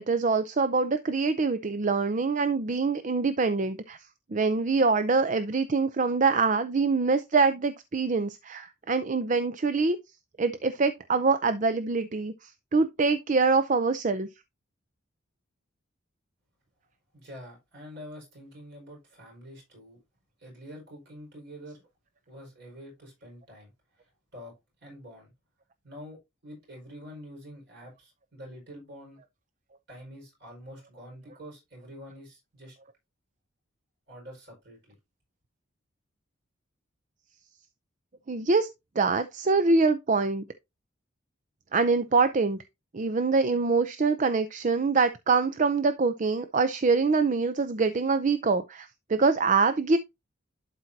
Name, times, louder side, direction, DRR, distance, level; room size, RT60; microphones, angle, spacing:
voice 1, 0.0-4.0 4.3-10.0 10.4-14.3 38.3-38.7 39.0-40.4 41.7-42.6 42.9-50.0, right 4 dB, 40° right, 0.5 m, -24 dB
voice 2, 17.1-20.0 20.4-21.9 22.3-23.7 24.0-24.5 24.8-25.3 25.8-26.2 26.4-29.2 29.9-32.8 34.1-35.0, equal, 55° right, 4.9 m, -46 dB
11.5 x 4.5 x 2.7 m
head